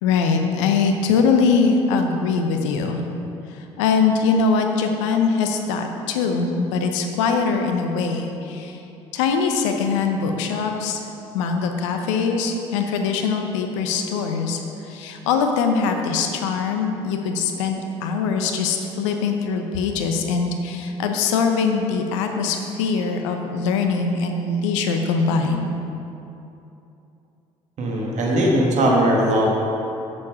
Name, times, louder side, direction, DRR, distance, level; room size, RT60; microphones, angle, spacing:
voice 1, 0.0-3.1 3.5-8.8 9.1-11.0 11.3-25.8, left 5 dB, 75° left, 4 dB, 0.8 m, -22 dB
voice 2, 27.8-29.5, right 1 dB, 50° right, -1 dB, 1.6 m, -19 dB
7.4 x 7.1 x 4.8 m, 2.8 s
hypercardioid pair, 55°, 16 cm